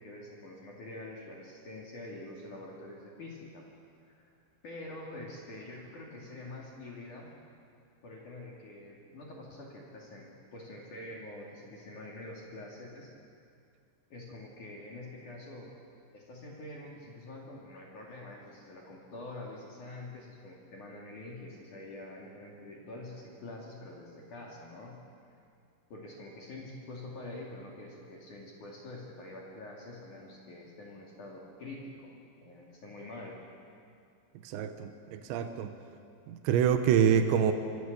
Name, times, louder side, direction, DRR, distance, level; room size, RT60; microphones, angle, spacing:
voice 1, 0.0-3.6 4.2-4.4 4.6-7.3 8.0-13.1 14.1-15.7 16.1-25.0 25.9-32.1 32.4-33.4, left 2 dB, 45° left, -3 dB, 3.8 m, -46 dB
voice 2, 34.4-35.7 36.3-37.5, right 8 dB, 80° right, 7 dB, 3.4 m, -26 dB
26.0 x 25.0 x 6.9 m, 2.4 s
omnidirectional pair, 5.3 m